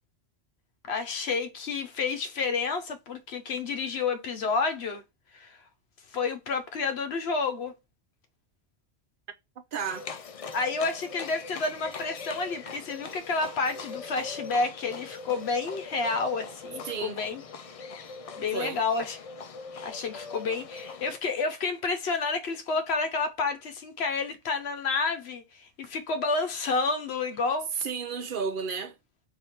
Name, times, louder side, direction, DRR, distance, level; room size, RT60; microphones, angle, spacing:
voice 1, 0.9-5.0 5.3-5.6 6.1-7.7 10.5-17.4 18.4-19.2 19.8-27.7, left 4 dB, 75° left, 1.0 m, -30 dB
voice 2, 9.7-10.1 16.8-17.2 18.5-18.8 27.8-28.9, right 6 dB, 60° right, 0.9 m, -32 dB
Livestock farm animals working animals, 9.8-21.2, left 4 dB, 50° left, 0.4 m, -41 dB
3.3 x 2.8 x 4.2 m
omnidirectional pair, 1.1 m